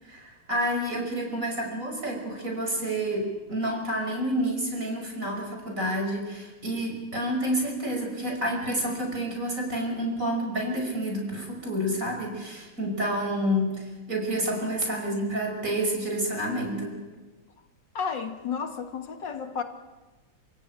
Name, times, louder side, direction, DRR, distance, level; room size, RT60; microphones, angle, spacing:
voice 1, 0.0-16.9, equal, 40° right, 6.1 m, -29 dB
voice 2, 17.9-19.6, left 6 dB, 70° left, 2.4 m, -32 dB
28.0 x 17.0 x 8.9 m
omnidirectional pair, 2.1 m